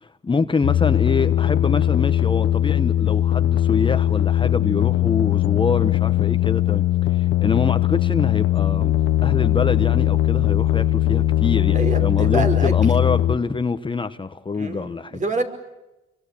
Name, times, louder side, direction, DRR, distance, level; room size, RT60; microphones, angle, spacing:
voice 1, 0.0-8.9 9.2-15.2, left 4 dB, 25° left, 1.3 m, -25 dB
sound 1, 0.6-13.4, left 12 dB, 80° left, 1.1 m, -20 dB
voice 2, 11.7-12.7 14.5-15.4, right 3 dB, 40° right, 5.4 m, -26 dB
28.5 x 24.0 x 8.6 m
cardioid pair, 90°, 20 cm